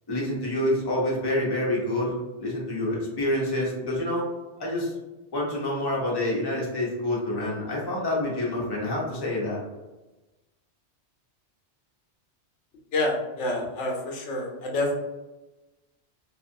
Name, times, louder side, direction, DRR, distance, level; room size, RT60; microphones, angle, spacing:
voice 1, 0.1-4.3 4.6-4.9 5.3-9.6, left 1 dB, 25° left, -4 dB, 0.6 m, -27 dB
voice 2, 12.9-15.0, left 2 dB, 85° left, 0 dB, 0.9 m, -28 dB
2.5 x 2.3 x 2.5 m, 1.1 s
omnidirectional pair, 1.2 m